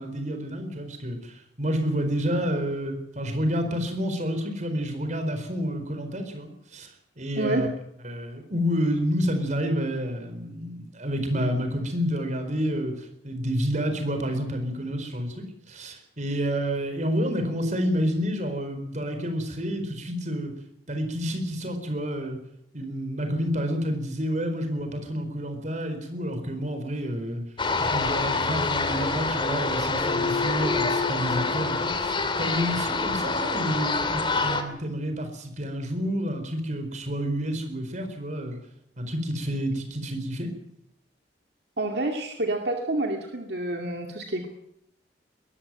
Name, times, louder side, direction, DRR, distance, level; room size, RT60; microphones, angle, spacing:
voice 1, 0.0-7.7 8.0-20.5 20.9-22.4 22.7-27.4 27.8-38.6 39.0-40.5, equal, 45° right, 7 dB, 4.5 m, -29 dB
voice 2, 7.3-7.7 41.8-44.5, right 2 dB, 65° right, 3 dB, 2.4 m, -28 dB
sound 1, 27.6-34.6, left 3 dB, 30° left, 2.5 m, -26 dB
22.0 x 14.0 x 9.1 m, 0.75 s
head